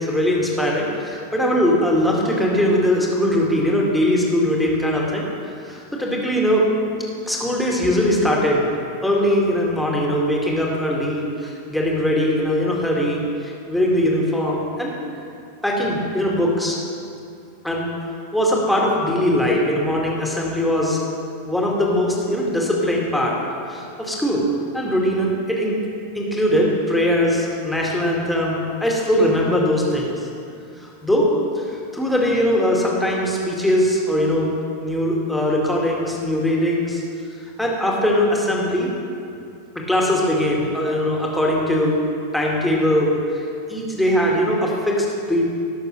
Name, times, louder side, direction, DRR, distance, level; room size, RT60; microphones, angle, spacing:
voice 1, 0.0-5.3 5.6-6.6 7.3-8.7 9.0-14.9 15.6-16.8 17.6-17.9 18.3-21.0 21.5-23.3 23.7-24.4 24.7-25.8 26.1-30.3 30.8-31.3 31.6-34.5 34.8-37.0 37.6-38.9 39.9-42.0 42.3-45.4, left 1 dB, 5° left, -3 dB, 2.0 m, -21 dB
18.0 x 6.4 x 3.2 m, 2.5 s
figure-of-eight pair, 90°, 0 cm